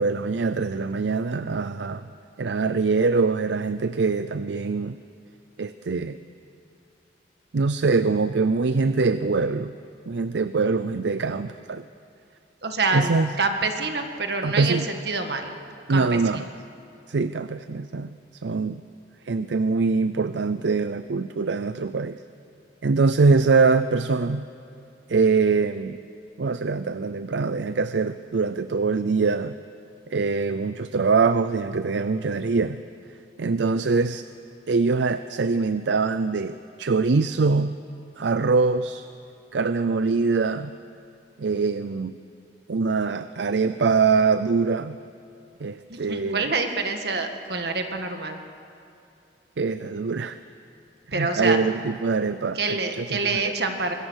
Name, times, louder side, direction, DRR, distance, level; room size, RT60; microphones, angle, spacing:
voice 1, 0.0-2.1 2.4-5.0 5.6-6.2 7.5-9.7 10.1-11.8 12.9-13.3 14.4-14.9 15.9-16.4 17.1-18.2 18.4-18.8 19.2-22.2 22.8-24.4 25.1-26.0 26.4-29.6 30.1-32.8 33.4-34.3 34.7-37.7 38.2-39.1 39.5-40.7 41.4-42.1 42.7-45.0 45.6-46.5 49.6-50.4 51.1-53.5, right 4 dB, 80° right, 12 dB, 0.5 m, -23 dB
voice 2, 12.6-13.1 13.4-15.6 15.9-16.4 45.9-48.4 51.1-51.6 52.5-53.9, right 3 dB, 65° right, 5 dB, 1.8 m, -26 dB
25.0 x 21.0 x 6.4 m, 2.6 s
head